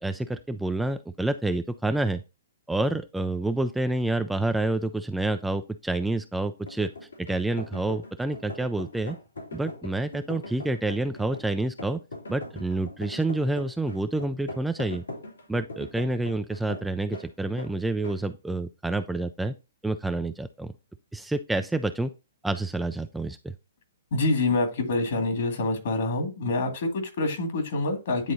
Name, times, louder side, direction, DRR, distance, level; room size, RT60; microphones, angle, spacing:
voice 1, 0.0-2.2 2.7-6.9 7.2-9.2 9.5-12.0 12.3-15.0 15.5-19.5 19.8-20.7 21.1-22.1 22.4-23.5, right 2 dB, 5° right, 9 dB, 0.3 m, -28 dB
sound 1, 6.7-17.3 17.6-17.7 18.0-18.2, left 2 dB, 85° left, 2.7 m, -40 dB
voice 2, 24.1-28.3, left 2 dB, 60° left, 5 dB, 2.0 m, -26 dB
9.9 x 3.7 x 2.7 m, 0.28 s
figure-of-eight pair, 125°, 0 cm